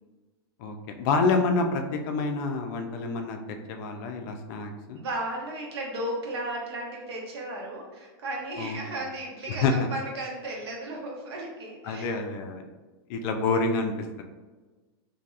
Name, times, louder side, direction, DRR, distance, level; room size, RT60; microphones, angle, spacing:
voice 1, 0.6-5.0 8.6-8.8 9.5-9.9 11.8-12.6 13.1-14.2, left 4 dB, 50° left, 4 dB, 0.4 m, -28 dB
voice 2, 5.0-12.1, right 1 dB, 75° right, 0 dB, 1.0 m, -35 dB
3.9 x 2.7 x 2.4 m, 1.3 s
supercardioid pair, 140°, 14 cm